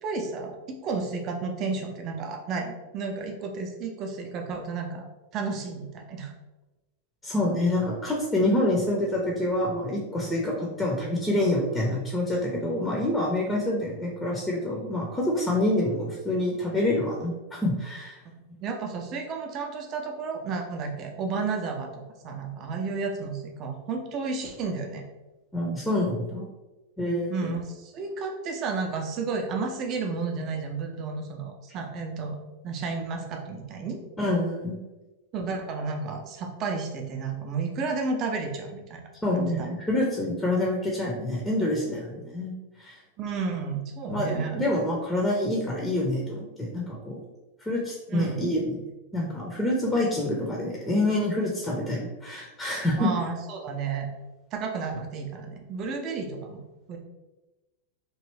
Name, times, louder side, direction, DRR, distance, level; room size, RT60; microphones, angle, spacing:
voice 1, 0.0-5.1 5.3-6.3 18.6-21.9 22.2-25.0 27.3-34.0 35.3-39.0 39.3-39.7 43.2-44.6 48.1-48.4 53.0-54.1 54.5-56.6 56.9-57.0, right 4 dB, 35° right, 3 dB, 0.6 m, -32 dB
voice 2, 7.2-17.3 17.6-18.1 25.5-26.5 27.0-27.5 34.2-34.8 39.2-43.0 44.1-47.2 47.6-48.8 49.1-53.1, left 1 dB, 10° left, -2 dB, 0.6 m, -27 dB
3.1 x 2.6 x 3.1 m, 1.1 s
figure-of-eight pair, 90°, 0 cm